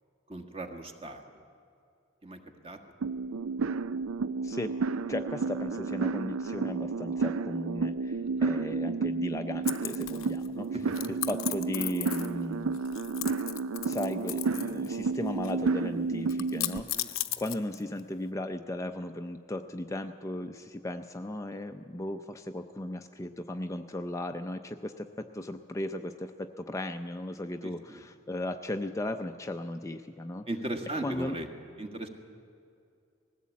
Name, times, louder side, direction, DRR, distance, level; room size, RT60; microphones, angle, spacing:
voice 1, 0.3-1.4 2.2-2.8 8.2-8.5 10.7-10.9 16.9-17.1 27.6-28.0 30.5-31.5 31.8-32.1, right 1 dB, 30° right, 4 dB, 1.6 m, -38 dB
sound 1, 3.0-16.8, right 4 dB, 90° right, 0.5 m, -31 dB
voice 2, 4.4-4.7 5.1-10.7 11.1-12.8 13.8-30.5 31.0-31.4, left 1 dB, 15° left, 6 dB, 0.5 m, -36 dB
sound 2, 9.7-10.5 10.9-12.4 12.7-14.9 15.1-15.7 16.3-18.0, left 14 dB, 85° left, 0.8 m, -36 dB
20.0 x 15.5 x 8.4 m, 2.5 s
head